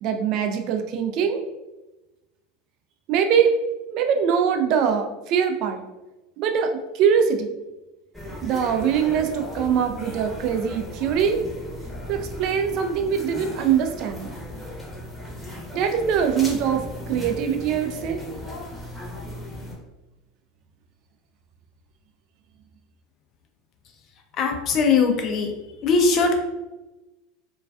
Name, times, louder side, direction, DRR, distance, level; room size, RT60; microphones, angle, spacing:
voice 1, 0.0-1.4 3.1-3.5 3.9-5.8 6.4-7.5 8.4-11.4 12.1-14.3 15.7-18.2, right 7 dB, 55° right, 6 dB, 0.3 m, -23 dB
sound 1, 8.1-19.7, left 1 dB, 10° left, 0.8 m, -37 dB
voice 2, 24.3-25.5 25.8-26.4, left 4 dB, 45° left, 4 dB, 0.5 m, -20 dB
2.3 x 2.3 x 2.3 m, 1.0 s
hypercardioid pair, 85°, 0 cm